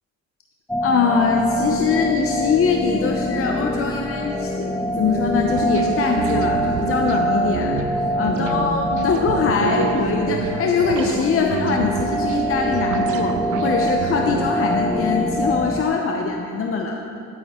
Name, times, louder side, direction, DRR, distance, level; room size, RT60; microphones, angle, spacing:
sound 1, 0.7-15.8, equal, 5° left, 0.6 m, -25 dB
voice 1, 0.8-7.7 8.1-17.0, left 5 dB, 45° left, 2 dB, 0.8 m, -22 dB
sound 2, 4.9-14.5, right 8 dB, 85° right, 0.5 m, -29 dB
11.5 x 8.8 x 3.7 m, 2.7 s
cardioid pair, 90°, 30 cm